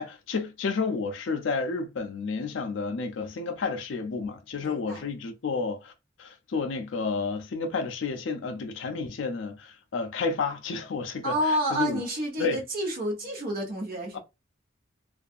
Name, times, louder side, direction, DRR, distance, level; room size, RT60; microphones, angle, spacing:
voice 1, 0.0-5.9 6.2-12.0 12.4-12.6 14.1-14.2, left 4 dB, 75° left, 0.5 m, -31 dB
voice 2, 4.6-5.0 11.2-14.2, right 1 dB, 50° right, 0.7 m, -29 dB
2.6 x 2.3 x 2.4 m
head